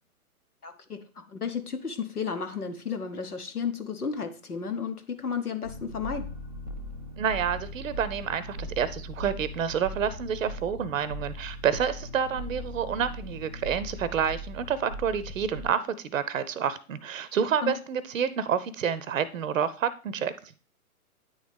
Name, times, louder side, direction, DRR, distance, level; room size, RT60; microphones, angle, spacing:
voice 1, 0.6-6.3 17.6-17.8, left 6 dB, 85° left, 1.1 m, -33 dB
sound 1, 5.6-15.7, left 1 dB, 30° right, 0.3 m, -39 dB
voice 2, 7.2-20.5, right 7 dB, 60° right, 0.7 m, -29 dB
9.3 x 4.0 x 3.4 m
figure-of-eight pair, 125°, 44 cm